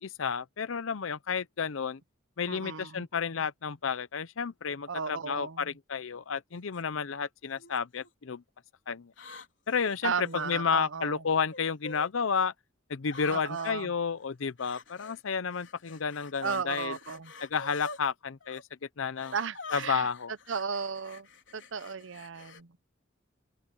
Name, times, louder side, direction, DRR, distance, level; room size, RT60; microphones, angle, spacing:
voice 1, 0.0-2.0 2.4-8.4 8.9-9.1 9.7-12.5 12.9-16.9 17.4-18.6 19.0-19.3 19.7-20.3, left 6 dB, 85° left, 0.7 m, -31 dB
voice 2, 2.5-3.1 4.9-5.7 10.0-11.2 13.3-13.9 16.4-17.3 19.3-20.1 20.5-21.3 21.5-22.7, right 6 dB, 75° right, 0.7 m, -35 dB
sound 1, 6.5-6.8 7.6-8.1 9.1-10.5 11.5-12.1 13.1-13.7 14.6-15.2 15.5-18.0 18.4-18.6 19.2-22.6, left 3 dB, 70° left, 3.6 m, -47 dB
open air
head